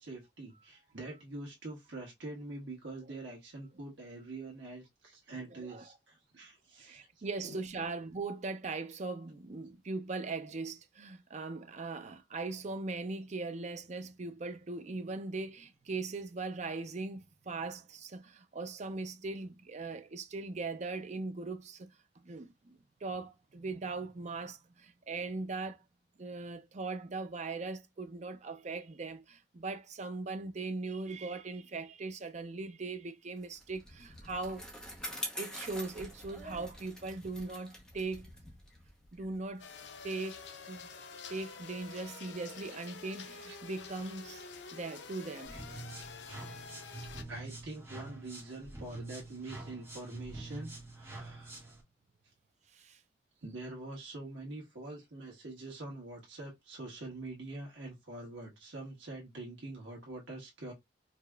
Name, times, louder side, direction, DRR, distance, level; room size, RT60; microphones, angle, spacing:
voice 1, 0.0-7.9 42.0-42.2 43.5-43.6 45.5-45.6 47.0-51.5 53.4-60.7, right 2 dB, 80° right, 1.4 m, -45 dB
voice 2, 5.5-5.8 6.8-21.9 22.2-25.8 26.2-34.7 35.4-38.3 39.1-39.7 40.0-40.4 40.7-40.8 41.3-44.4 44.7-45.6 52.7-53.0, right 3 dB, 40° right, 0.5 m, -40 dB
Bicycle, 33.4-40.1, equal, 5° left, 0.8 m, -46 dB
sound 1, 39.6-47.2, left 5 dB, 70° left, 0.6 m, -48 dB
sound 2, 45.4-51.8, right 2 dB, 15° right, 1.3 m, -46 dB
4.8 x 2.8 x 2.3 m
head